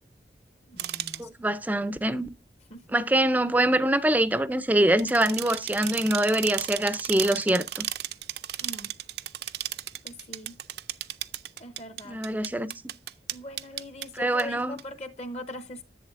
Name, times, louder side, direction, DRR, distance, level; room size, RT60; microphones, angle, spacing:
voice 1, 0.7-1.3 2.7-2.9 8.6-9.0 10.0-10.6 11.6-12.2 13.3-15.8, left 1 dB, 40° left, 0.7 m, -41 dB
sound 1, 0.8-1.2 4.9-14.0 14.4-14.5 14.8-14.9, right 13 dB, 65° right, 0.5 m, -34 dB
voice 2, 1.2-2.3 2.9-7.9 12.1-12.7 14.2-14.8, right 1 dB, 10° right, 0.4 m, -24 dB
10.5 x 8.0 x 2.5 m
head